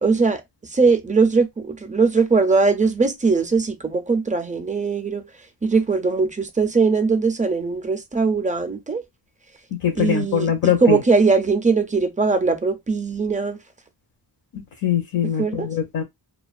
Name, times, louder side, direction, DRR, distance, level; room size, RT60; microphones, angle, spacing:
voice 1, 0.0-5.3 5.6-9.0 10.0-13.6 15.2-15.7, right 4 dB, 20° right, 0.3 m, -20 dB
voice 2, 9.8-11.0 14.5-16.0, left 8 dB, 55° left, 0.6 m, -22 dB
2.4 x 2.2 x 2.3 m
wide cardioid pair, 120°, 42 cm